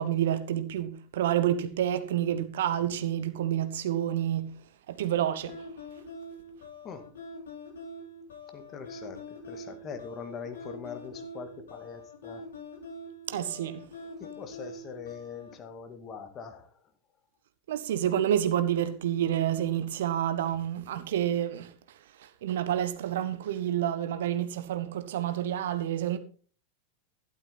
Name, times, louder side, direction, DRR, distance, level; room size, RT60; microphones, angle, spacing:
voice 1, 0.0-4.5 4.9-5.6 13.3-13.8 17.7-21.7 22.4-26.2, right 11 dB, 60° right, 1.2 m, -29 dB
sound 1, 5.5-15.6, left 1 dB, 65° left, 3.9 m, -44 dB
voice 2, 8.5-9.2 9.5-12.4 14.2-16.7, left 6 dB, 30° left, 2.3 m, -42 dB
12.5 x 11.5 x 4.2 m
figure-of-eight pair, 90°, 0 cm